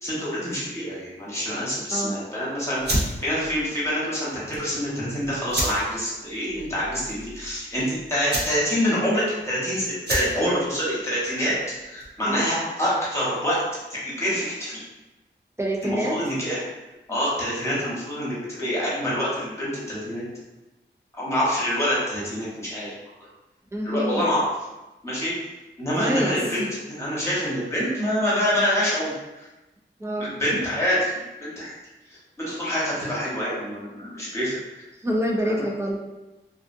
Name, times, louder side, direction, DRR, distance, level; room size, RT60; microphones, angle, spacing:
voice 1, 0.0-13.6 13.9-14.8 15.8-16.6 17.1-20.2 21.1-22.9 23.8-24.5 25.0-25.3 25.8-29.5 30.2-31.7 32.4-34.8 35.4-35.6, equal, 15° left, -8 dB, 1.1 m, -26 dB
sound 1, 2.8-12.3, right 1 dB, 55° right, 0.6 m, -32 dB
voice 2, 15.6-16.2 23.7-24.2 26.0-26.4 30.0-30.3 35.0-36.0, equal, 15° right, -1 dB, 0.4 m, -26 dB
2.5 x 2.3 x 2.5 m, 1.0 s
wide cardioid pair, 85°, 20 cm